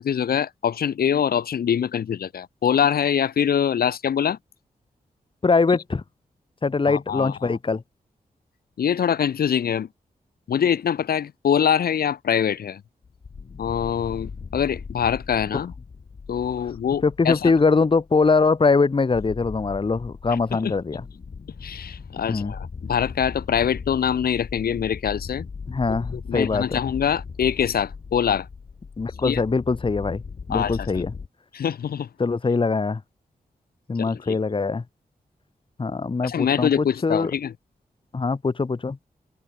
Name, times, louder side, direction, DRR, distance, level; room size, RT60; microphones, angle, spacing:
voice 1, 0.0-4.4 6.9-7.6 8.8-9.9 10.5-12.8 13.6-15.7 16.3-17.5 20.3-20.7 21.6-25.5 26.1-28.5 29.2-29.4 30.5-31.1 31.5-32.1 34.1-34.4 36.2-37.5, left 8 dB, 85° left, 0.9 m, -24 dB
voice 2, 5.4-6.0 6.6-7.8 17.0-21.0 22.3-22.5 25.7-26.8 29.0-30.2 30.5-31.1 32.2-33.0 33.9-34.8 35.8-37.3 38.1-39.0, left 4 dB, 35° left, 0.9 m, -22 dB
sound 1, 13.0-31.3, left 5 dB, 60° left, 2.3 m, -38 dB
cardioid pair, 55°, 15 cm